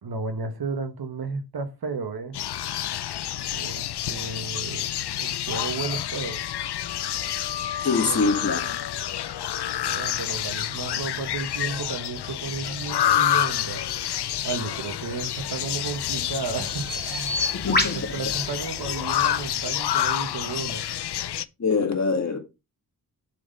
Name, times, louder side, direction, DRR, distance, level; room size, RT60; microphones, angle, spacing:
voice 1, 0.0-2.4 3.5-6.4 8.0-8.7 9.8-13.8 14.4-17.4 17.9-20.8, right 4 dB, 70° right, 1.5 m, -33 dB
sound 1, 2.3-21.4, left 11 dB, 85° left, 0.6 m, -28 dB
voice 2, 7.8-8.6 17.5-18.3 21.6-22.4, left 4 dB, 45° left, 2.3 m, -24 dB
Bird vocalization bird call bird song, 15.3-19.5, left 2 dB, 25° left, 2.8 m, -31 dB
7.0 x 4.9 x 5.4 m
wide cardioid pair, 90°, 39 cm